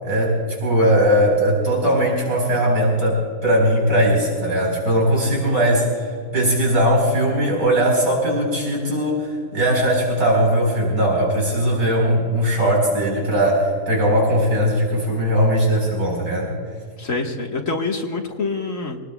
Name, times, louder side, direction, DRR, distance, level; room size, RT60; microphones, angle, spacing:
voice 1, 0.0-16.5, equal, 75° right, -2 dB, 4.8 m, -19 dB
voice 2, 17.0-19.0, left 3 dB, 60° left, 1 dB, 1.9 m, -26 dB
26.5 x 19.0 x 2.3 m, 2.1 s
omnidirectional pair, 1.6 m